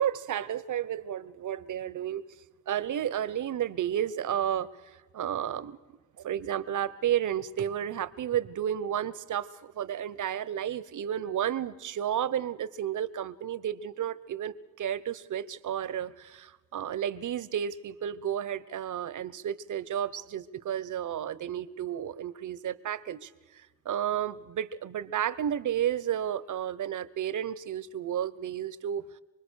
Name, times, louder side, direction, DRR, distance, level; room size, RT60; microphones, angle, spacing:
voice 1, 0.0-2.2 2.7-4.7 5.1-5.8 6.2-23.3 23.8-29.1, right 10 dB, 70° right, 17 dB, 1.1 m, -32 dB
27.0 x 20.5 x 6.5 m, 1.2 s
cardioid pair, 80°, 32 cm